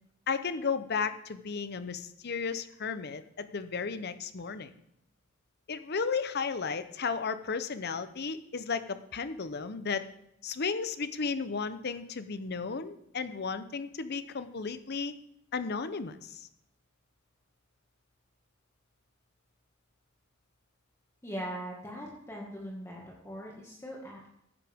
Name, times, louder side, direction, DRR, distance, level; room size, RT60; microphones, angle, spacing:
voice 1, 0.3-4.7 5.7-10.1 10.4-15.1 15.5-16.5, left 5 dB, 55° left, 12 dB, 0.8 m, -34 dB
voice 2, 21.2-24.3, equal, 15° left, -3 dB, 1.9 m, -40 dB
14.5 x 9.8 x 3.6 m, 0.76 s
head